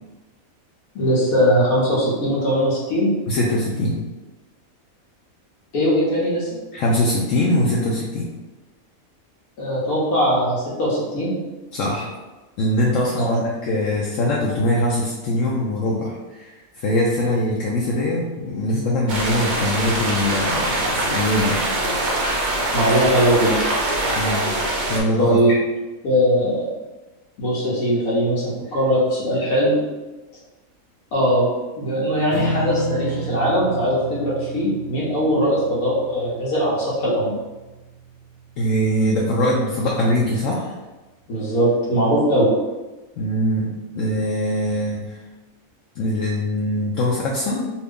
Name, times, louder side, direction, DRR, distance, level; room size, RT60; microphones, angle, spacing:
voice 1, 0.9-3.1 5.7-6.5 9.6-11.3 13.1-13.4 22.7-23.6 25.2-25.6 26.0-26.7 27.4-29.8 31.1-31.5 31.8-37.3 41.3-42.5, equal, 90° left, -7 dB, 1.3 m, -20 dB
voice 2, 3.3-4.0 6.7-8.3 11.7-12.1 12.6-21.6 24.1-24.5 24.9-25.4 38.6-40.8 43.2-45.2 46.0-47.7, left 1 dB, 70° left, -3 dB, 0.9 m, -22 dB
sound 1, 19.1-25.0, right 1 dB, 55° right, 0.5 m, -23 dB
Strum, 32.3-39.2, right 1 dB, 85° right, 1.0 m, -32 dB
2.6 x 2.6 x 3.4 m, 1.1 s
omnidirectional pair, 1.5 m